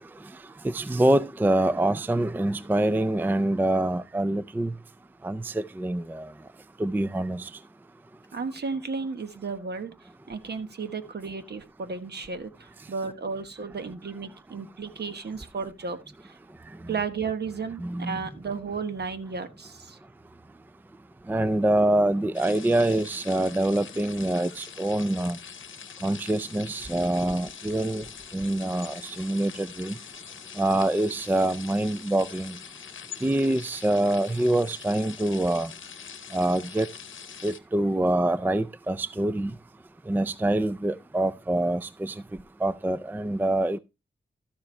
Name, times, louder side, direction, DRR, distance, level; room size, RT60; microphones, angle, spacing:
voice 1, 0.6-4.7 5.2-6.3 6.8-7.5 17.8-18.2 21.3-25.4 26.0-28.0 28.3-29.9 30.6-32.6 33.2-35.7 36.3-36.9 37.4-39.5 40.1-42.1 42.6-43.8, right 1 dB, 10° right, 0.4 m, -25 dB
voice 2, 8.3-16.4 16.9-20.0, right 5 dB, 60° right, 1.2 m, -34 dB
sound 1, 22.3-37.6, left 7 dB, 85° left, 0.8 m, -43 dB
12.5 x 7.2 x 3.2 m
wide cardioid pair, 100°, 20 cm